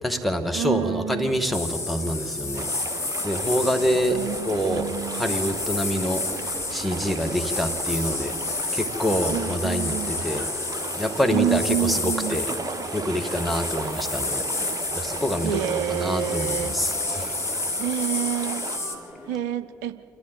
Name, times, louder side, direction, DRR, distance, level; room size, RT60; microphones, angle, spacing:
voice 1, 0.0-2.9 3.2-4.2 4.4-8.3 8.7-10.4 11.0-12.5 12.9-14.4 14.9-17.4, equal, ahead, 6 dB, 2.2 m, -26 dB
voice 2, 0.5-1.3 4.1-5.3 9.3-10.1 11.3-12.4 15.4-16.8 17.8-18.9 19.3-20.0, right 11 dB, 70° right, 13 dB, 0.5 m, -28 dB
sound 1, 1.1-19.4, left 1 dB, 55° left, 6.7 m, -43 dB
sound 2, 1.5-19.0, left 3 dB, 30° left, 3.3 m, -31 dB
sound 3, 2.5-18.8, right 4 dB, 40° right, 1.5 m, -37 dB
27.5 x 13.0 x 8.0 m, 2.5 s
figure-of-eight pair, 40°, 9 cm